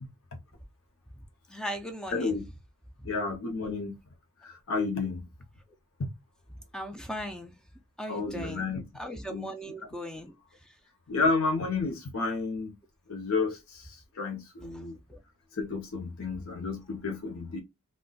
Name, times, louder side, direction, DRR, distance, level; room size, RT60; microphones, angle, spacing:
voice 1, 1.5-2.4 6.7-7.5 8.0-8.7 8.9-10.3 15.1-15.2, equal, 5° left, 0.4 m, -38 dB
voice 2, 2.1-2.5 3.0-4.0 4.4-5.2 6.0-6.1 8.1-8.8 9.3-9.5 11.1-12.7 13.1-15.0 15.5-17.6, left 3 dB, 65° left, 0.7 m, -31 dB
3.8 x 2.2 x 2.3 m
head